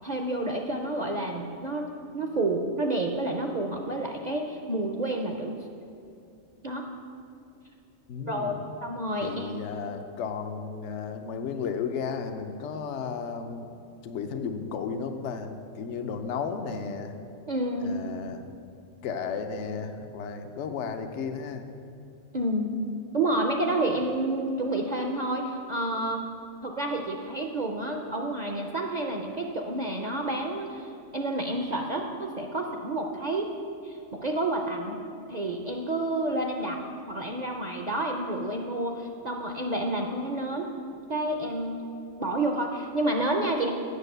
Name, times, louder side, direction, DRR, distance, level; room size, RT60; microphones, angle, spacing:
voice 1, 0.0-1.8 2.1-5.5 6.6-6.8 8.3-8.5 8.8-9.6 17.5-18.1 22.3-22.8 23.1-26.3 26.6-33.5 33.8-35.0 35.3-36.8 37.1-40.7 41.1-41.8 42.2-43.7, right 1 dB, 45° right, 2 dB, 0.6 m, -29 dB
voice 2, 8.1-8.7 9.2-13.7 14.0-17.2 17.8-18.5 19.0-21.7 23.9-24.0, left 5 dB, 65° left, 7 dB, 1.0 m, -34 dB
8.3 x 7.0 x 6.6 m, 2.5 s
omnidirectional pair, 1.3 m